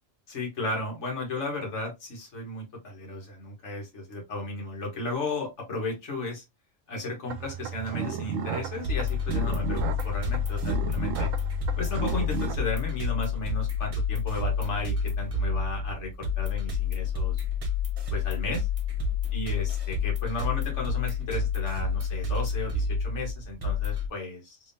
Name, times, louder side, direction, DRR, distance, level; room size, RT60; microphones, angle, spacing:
voice 1, 0.3-6.4 6.9-11.3 11.8-17.4 18.1-18.7 19.3-24.6, left 2 dB, 65° left, 0 dB, 1.7 m, -34 dB
sound 1, 7.3-12.5, right 7 dB, 90° right, 1.0 m, -33 dB
sound 2, 8.8-24.1, left 5 dB, 30° right, 0.8 m, -29 dB
3.5 x 3.4 x 2.6 m, 0.21 s
omnidirectional pair, 1.3 m